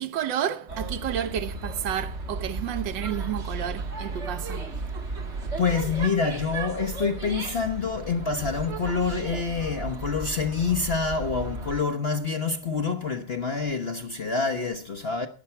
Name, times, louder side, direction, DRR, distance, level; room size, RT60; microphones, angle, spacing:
voice 1, 0.0-4.7, right 10 dB, 65° right, 1.5 m, -31 dB
sound 1, 0.7-11.8, right 3 dB, 35° right, 1.8 m, -34 dB
voice 2, 5.6-15.3, left 5 dB, 50° left, 0.8 m, -27 dB
15.5 x 10.0 x 4.4 m
omnidirectional pair, 2.3 m